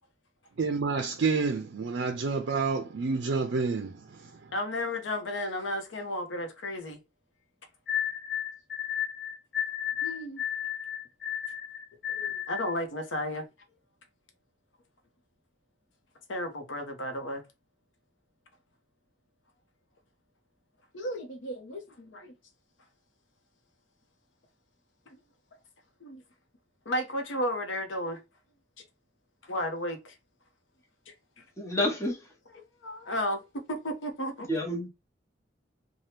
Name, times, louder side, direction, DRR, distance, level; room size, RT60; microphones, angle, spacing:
voice 1, 0.6-4.5, right 4 dB, 65° right, 0.4 m, -29 dB
voice 2, 4.5-7.0 10.0-10.4 12.1-13.5 16.3-17.4 20.9-22.4 26.0-26.2 26.9-28.2 29.4-30.1 31.1-31.4 32.8-34.5, left 1 dB, 90° left, 0.8 m, -33 dB
sound 1, 7.9-12.8, left 10 dB, 60° left, 0.7 m, -33 dB
voice 3, 31.6-32.2 34.5-34.9, left 1 dB, 15° left, 0.8 m, -29 dB
2.8 x 2.2 x 3.2 m
head